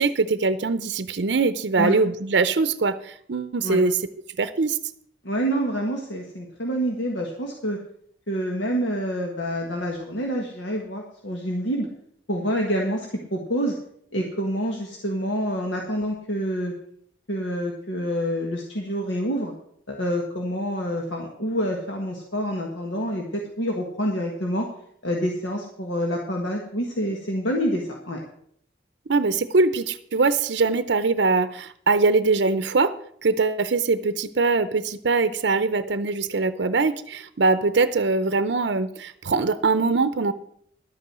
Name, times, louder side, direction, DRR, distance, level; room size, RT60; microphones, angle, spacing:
voice 1, 0.0-4.0 4.4-4.8 29.1-32.9 33.2-40.3, right 3 dB, 70° right, 12 dB, 0.6 m, -22 dB
voice 2, 5.2-7.8 8.3-11.9 12.3-13.8 14.1-16.7 17.3-19.5 19.9-24.7 25.0-28.2, equal, 85° left, 1 dB, 1.6 m, -27 dB
11.5 x 8.5 x 6.1 m, 0.65 s
head